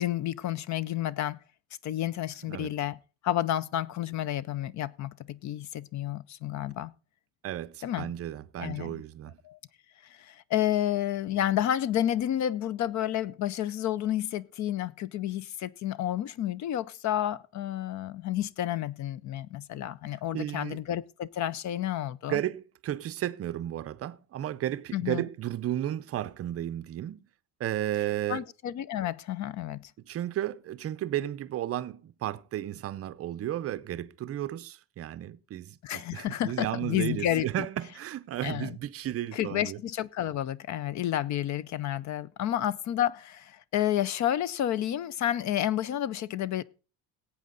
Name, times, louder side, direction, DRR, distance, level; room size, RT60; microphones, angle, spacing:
voice 1, 0.0-1.4 1.8-3.0 3.2-6.9 7.8-8.1 8.6-9.0 9.4-9.6 10.1-22.4 24.9-25.2 28.3-29.9 35.8-37.5 38.4-38.8 39.3-46.6, left 12 dB, 40° left, 0.6 m, -30 dB
voice 2, 7.4-9.4 20.3-20.8 22.3-27.3 27.6-28.4 30.1-39.8, right 12 dB, 35° right, 0.6 m, -33 dB
18.0 x 8.5 x 3.9 m
cardioid pair, 155°, 43 cm